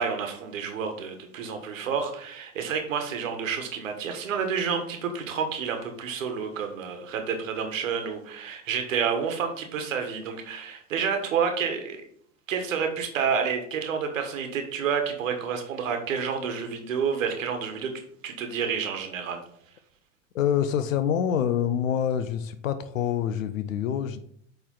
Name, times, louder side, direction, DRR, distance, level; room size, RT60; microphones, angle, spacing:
voice 1, 0.0-12.0 12.5-17.9 18.2-19.4, right 6 dB, 80° right, 5 dB, 1.3 m, -29 dB
voice 2, 20.3-24.2, left 9 dB, 85° left, 10 dB, 0.6 m, -26 dB
8.4 x 3.4 x 3.8 m, 0.64 s
hypercardioid pair, 85°, 39 cm